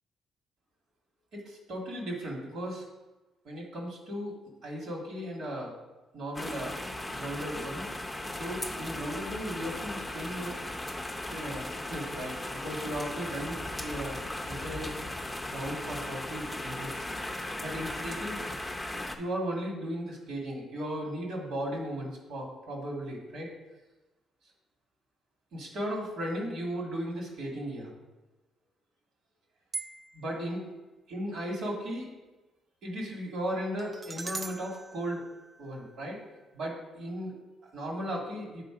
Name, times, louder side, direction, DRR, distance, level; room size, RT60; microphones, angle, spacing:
voice 1, 1.3-2.9 3.4-4.3 4.6-5.7 6.1-6.8 7.2-8.1 8.3-10.6 11.3-15.0 15.5-17.1 17.6-18.6 18.9-23.5 25.5-27.9 30.1-30.6 31.1-32.1 32.8-35.2 35.6-36.2 36.5-37.3 37.7-38.6, equal, 75° right, -1 dB, 1.9 m, -36 dB
sound 1, 6.3-19.2, left 1 dB, 10° left, 0.6 m, -37 dB
sound 2, 29.7-30.4 33.8-36.0, right 3 dB, 30° right, 0.5 m, -41 dB
6.8 x 3.9 x 4.9 m, 1.1 s
cardioid pair, 90°, 0 cm